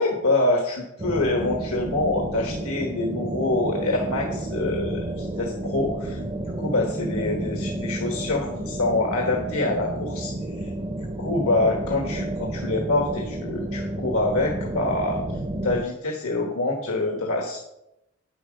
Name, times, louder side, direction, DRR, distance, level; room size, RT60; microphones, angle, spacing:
voice 1, 0.0-10.7 11.2-15.2 15.6-17.6, left 2 dB, 80° left, 1 dB, 1.4 m, -25 dB
sound 1, 1.0-15.8, right 1 dB, 25° right, 0.6 m, -31 dB
9.5 x 7.6 x 5.2 m, 0.86 s
head